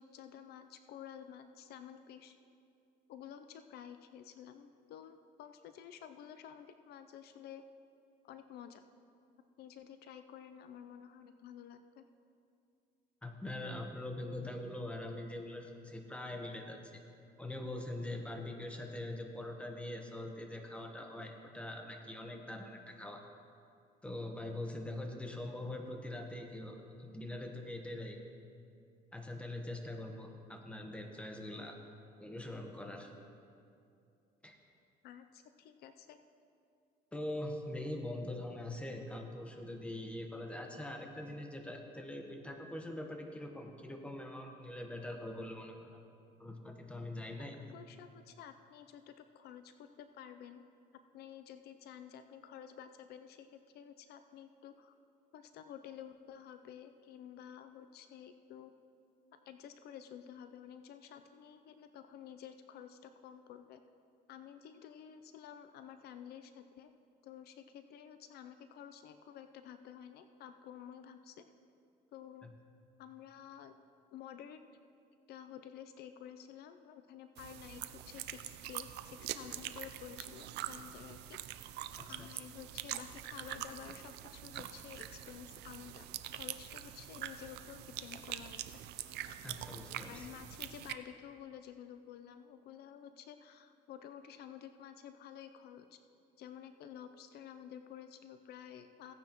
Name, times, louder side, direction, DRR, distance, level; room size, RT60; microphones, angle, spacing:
voice 1, 0.0-2.3 3.1-7.6 8.2-8.8 9.6-12.0 35.0-36.2 47.4-50.7 51.1-53.5 53.7-54.9 55.3-58.7 59.5-63.8 64.3-66.9 67.2-71.5 72.1-72.5 73.0-73.7 74.1-74.6 75.3-81.4 82.1-86.1 86.3-88.6 90.1-96.0 96.4-99.1, left 9 dB, 70° left, 9 dB, 0.5 m, -51 dB
voice 2, 13.2-17.0 17.4-23.2 24.0-28.2 29.1-31.8 32.2-33.1 34.4-34.6 37.1-46.0 46.4-47.6 72.4-72.5 82.0-82.3 89.4-90.3, left 1 dB, 5° left, 3 dB, 1.1 m, -43 dB
sound 1, 77.4-90.9, right 12 dB, 80° right, 0.5 m, -44 dB
16.5 x 9.3 x 3.0 m, 2.5 s
cardioid pair, 110°, 17 cm